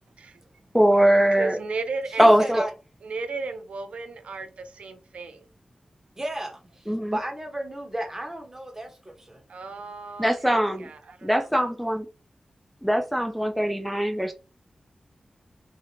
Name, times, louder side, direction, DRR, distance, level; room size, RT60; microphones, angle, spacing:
voice 1, 0.7-1.6 2.2-2.6 6.9-7.2 10.2-10.9 11.2-12.1 12.8-14.3, equal, ahead, 0.4 m, -21 dB
voice 2, 1.3-2.3 3.0-5.5 9.5-11.5, right 3 dB, 85° right, 0.4 m, -35 dB
voice 3, 2.1-2.7 6.1-9.4, right 1 dB, 20° right, 0.8 m, -34 dB
2.5 x 2.1 x 2.8 m
wide cardioid pair, 90°, 2 cm